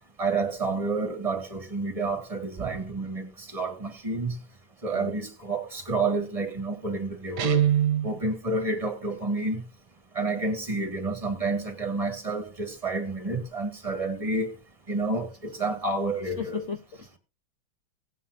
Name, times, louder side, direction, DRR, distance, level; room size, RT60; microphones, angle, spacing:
voice 1, 0.2-4.3 4.8-7.7 8.0-9.6 10.2-14.5 14.9-16.6, right 3 dB, 20° right, 2.0 m, -29 dB
Guitar, 7.4-8.2, right 11 dB, 60° right, 1.4 m, -23 dB
voice 2, 16.4-17.2, left 6 dB, 50° left, 1.0 m, -36 dB
17.5 x 9.2 x 2.7 m
omnidirectional pair, 2.2 m